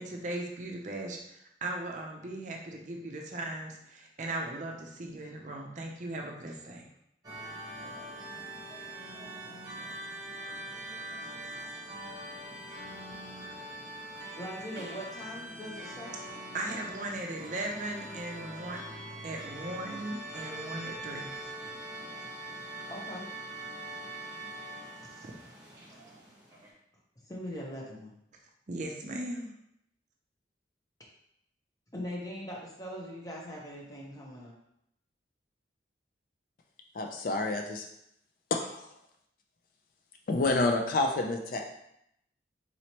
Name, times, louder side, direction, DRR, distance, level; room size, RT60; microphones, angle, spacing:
voice 1, 0.0-6.9 16.5-18.8 19.2-21.5 28.7-29.5, right 2 dB, 40° right, 1 dB, 0.5 m, -38 dB
sound 1, 7.2-26.7, right 1 dB, 20° right, 1.1 m, -43 dB
voice 2, 14.3-16.2 22.9-23.3 25.1-25.3 27.3-28.1 31.9-34.5, equal, 20° left, -3 dB, 0.8 m, -41 dB
voice 3, 36.9-37.9 38.5-38.9 40.3-41.6, left 2 dB, 50° left, 3 dB, 0.4 m, -28 dB
4.1 x 3.0 x 2.9 m, 0.76 s
head